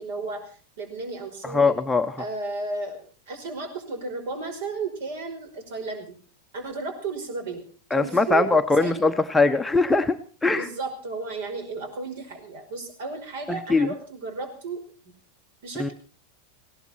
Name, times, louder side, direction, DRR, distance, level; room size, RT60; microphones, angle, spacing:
voice 1, 0.0-1.8 2.2-6.2 6.5-7.6 7.9-8.5 8.8-9.0 10.5-14.8 15.6-15.9, right 3 dB, 55° right, 7 dB, 5.3 m, -33 dB
voice 2, 1.4-2.1 7.9-10.7 13.5-13.9 15.8-15.9, left 3 dB, 5° left, 6 dB, 1.0 m, -21 dB
19.5 x 17.0 x 4.4 m, 0.39 s
figure-of-eight pair, 90°, 0 cm